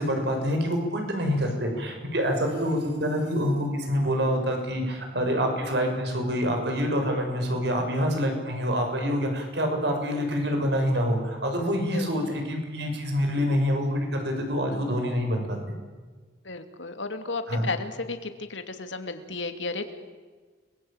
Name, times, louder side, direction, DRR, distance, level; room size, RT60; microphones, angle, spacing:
voice 1, 0.0-15.6 17.5-17.7, equal, 65° right, 3 dB, 6.9 m, -26 dB
voice 2, 16.4-19.9, left 3 dB, 85° left, 7 dB, 2.6 m, -33 dB
30.0 x 21.5 x 9.0 m, 1.4 s
head